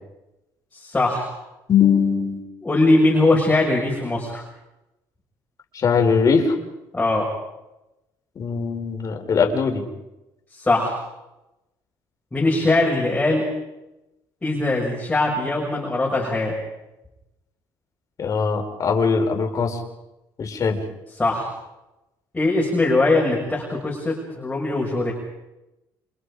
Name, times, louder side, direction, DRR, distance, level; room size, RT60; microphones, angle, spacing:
voice 1, 0.7-1.3 2.6-4.4 6.9-7.3 10.5-11.0 12.3-13.5 14.4-16.5 21.2-21.5 22.3-25.1, left 2 dB, 15° left, -2 dB, 6.6 m, -21 dB
voice 2, 1.7-2.4 5.7-6.6 8.3-9.8 18.2-19.8 20.4-20.8, left 5 dB, 45° left, 4 dB, 5.0 m, -20 dB
29.5 x 26.5 x 5.1 m, 0.94 s
cardioid pair, 120°, 8 cm